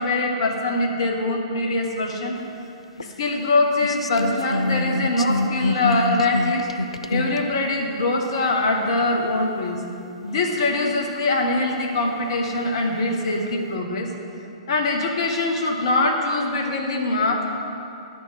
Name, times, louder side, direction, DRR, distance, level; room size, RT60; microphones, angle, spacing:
voice 1, 0.0-2.3 3.0-6.7 7.1-9.8 10.2-14.1 14.7-17.4, left 2 dB, 55° left, 2 dB, 1.1 m, -23 dB
sound 1, 3.0-3.1 3.8-7.4 8.1-8.2 9.0-9.1 9.7-9.8 10.5-10.6 11.2-11.3 12.0-12.7 13.2-13.5, left 2 dB, 80° left, 0.4 m, -26 dB
11.0 x 4.4 x 6.5 m, 2.7 s
figure-of-eight pair, 110°, 3 cm